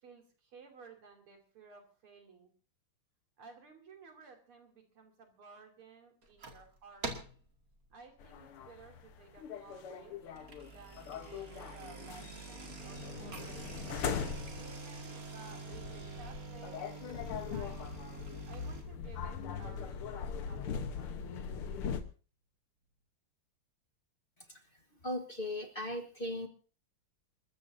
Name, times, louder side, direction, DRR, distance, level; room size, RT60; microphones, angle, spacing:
voice 1, 0.0-2.5 3.4-7.1 7.9-10.2 10.6-13.7 14.6-16.9 17.1-18.0 18.5-20.9, right 4 dB, 90° right, 3 dB, 3.7 m, -56 dB
sound 1, 6.2-6.7 7.0-7.5 7.9-8.2 8.8-8.9 9.1-9.2 10.2-18.8, right 3 dB, 40° right, 2.4 m, -46 dB
sound 2, 8.2-22.0, left 7 dB, 85° left, 2.1 m, -41 dB
voice 2, 25.0-26.5, left 1 dB, 30° left, 5 dB, 1.2 m, -37 dB
28.0 x 13.5 x 2.7 m, 0.37 s
omnidirectional pair, 2.3 m